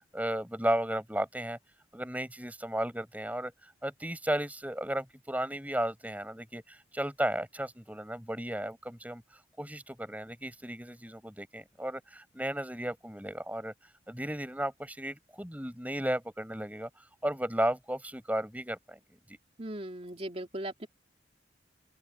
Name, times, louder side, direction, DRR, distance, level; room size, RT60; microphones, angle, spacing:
voice 1, 0.1-1.6 1.9-9.2 9.6-13.7 14.1-16.9 17.2-19.0 19.3-19.4, right 1 dB, 10° right, 7.4 m, -34 dB
voice 2, 19.6-20.9, right 1 dB, 30° right, 2.9 m, -38 dB
head